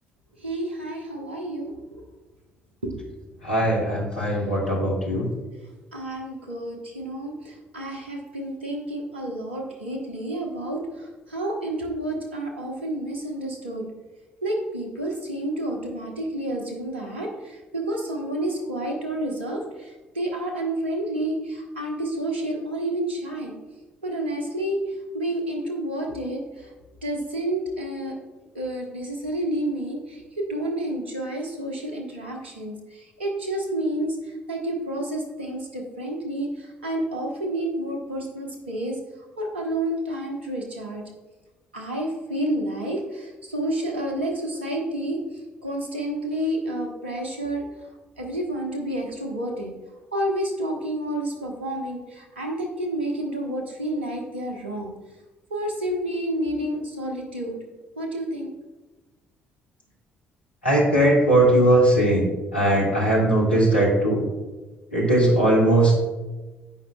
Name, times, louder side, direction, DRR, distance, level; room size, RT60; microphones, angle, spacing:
voice 1, 0.4-1.7 2.8-2.9 5.9-13.8 14.4-23.5 24.0-24.8 25.1-26.7 27.0-28.2 28.5-34.2 34.5-39.0 39.4-41.0 41.7-45.2 45.6-47.7 48.2-49.7 50.1-54.9 55.5-57.6 58.0-58.5, right 1 dB, 85° right, 1 dB, 1.2 m, -29 dB
voice 2, 3.4-5.3 60.6-64.3 64.9-65.9, right 1 dB, 85° left, -5 dB, 1.7 m, -19 dB
16.0 x 5.7 x 2.3 m, 1.2 s
figure-of-eight pair, 50°, 6 cm